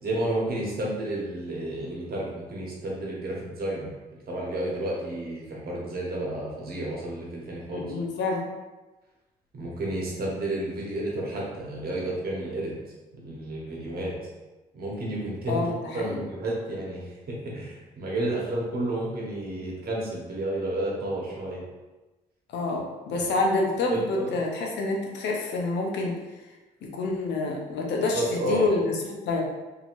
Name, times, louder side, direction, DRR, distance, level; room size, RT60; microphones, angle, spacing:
voice 1, 0.0-3.9 4.3-7.9 9.5-12.7 13.2-14.1 14.7-15.6 15.9-21.6 23.1-23.2 23.9-24.3 28.1-28.6, right 1 dB, 55° right, -4 dB, 1.1 m, -31 dB
voice 2, 7.7-8.4 15.5-16.2 22.5-26.1 26.9-29.4, left 3 dB, 75° left, 0 dB, 0.6 m, -27 dB
2.8 x 2.8 x 2.6 m, 1.1 s
supercardioid pair, 55°, 18 cm